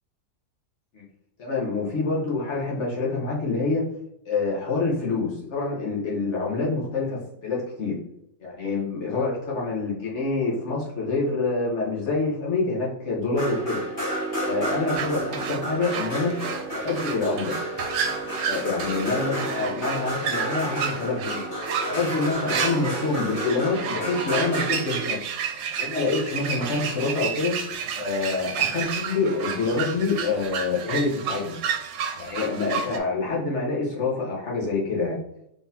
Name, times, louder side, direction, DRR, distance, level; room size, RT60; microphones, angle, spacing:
voice 1, 1.4-3.8 4.2-7.9 8.4-13.8 14.4-16.4 16.7-17.6 18.4-21.5 21.9-25.2 25.8-27.6 28.0-31.5 32.2-35.2, left 3 dB, 55° left, -4 dB, 1.0 m, -26 dB
sound 1, 13.3-25.1, right 1 dB, 25° left, 1.3 m, -31 dB
sound 2, 14.9-33.0, right 7 dB, 85° right, 1.2 m, -31 dB
3.7 x 3.6 x 2.7 m, 0.77 s
omnidirectional pair, 1.7 m